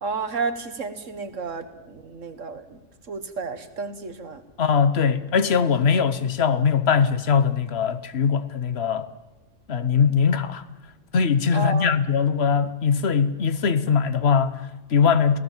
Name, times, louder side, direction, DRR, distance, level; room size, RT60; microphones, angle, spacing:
voice 1, 0.0-2.8 3.1-4.4 11.5-12.0, right 4 dB, 70° right, 1.9 m, -31 dB
voice 2, 4.6-9.1 9.7-10.6 11.1-15.4, left 6 dB, 55° left, 1.3 m, -21 dB
28.0 x 17.5 x 7.4 m
omnidirectional pair, 1.4 m